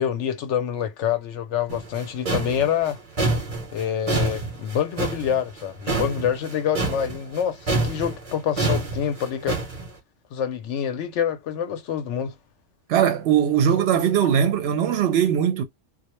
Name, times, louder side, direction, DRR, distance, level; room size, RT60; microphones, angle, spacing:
voice 1, 0.0-3.0 3.7-9.6 10.3-12.3, left 9 dB, 75° left, 0.9 m, -26 dB
sound 1, 1.7-7.4 7.7-9.9, right 2 dB, 35° right, 0.8 m, -26 dB
voice 2, 12.9-15.6, right 9 dB, 65° right, 0.8 m, -20 dB
2.3 x 2.0 x 2.9 m
omnidirectional pair, 1.2 m